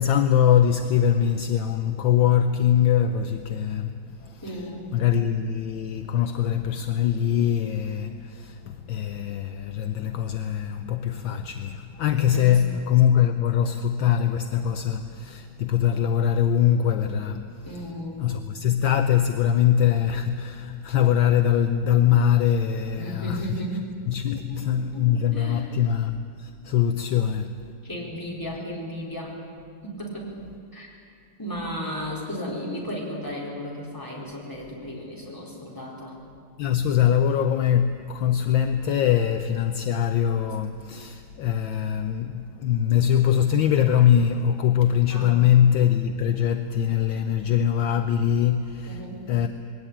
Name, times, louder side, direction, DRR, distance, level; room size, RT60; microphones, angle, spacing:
voice 1, 0.0-4.5 4.9-17.8 18.2-23.6 24.1-27.6 32.0-32.1 36.6-49.5, left 9 dB, 70° left, 1.4 m, -22 dB
voice 2, 4.4-4.9 12.3-12.5 17.6-18.3 23.0-23.8 24.5-24.6 24.9-25.0 25.3-25.6 27.8-29.4 29.8-30.3 30.7-30.9 31.4-36.2 45.1-45.4 48.9-49.2, equal, 10° left, 4.1 m, -34 dB
21.0 x 17.5 x 8.7 m
omnidirectional pair, 2.3 m